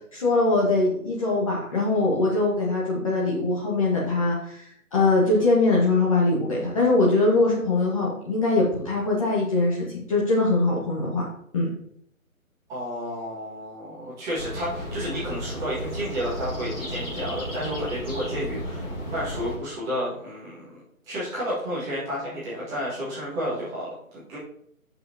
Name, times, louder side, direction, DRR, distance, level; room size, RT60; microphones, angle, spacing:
voice 1, 0.1-4.6 4.9-11.2 11.5-11.7, left 2 dB, 25° left, -4 dB, 1.4 m, -22 dB
voice 2, 12.7-18.9 19.1-20.6 21.0-24.4, equal, 10° right, -9 dB, 1.7 m, -31 dB
sound 1, 14.4-19.6, equal, 40° left, 3.4 m, -33 dB
11.0 x 5.8 x 2.8 m, 0.69 s
figure-of-eight pair, 160°, 43 cm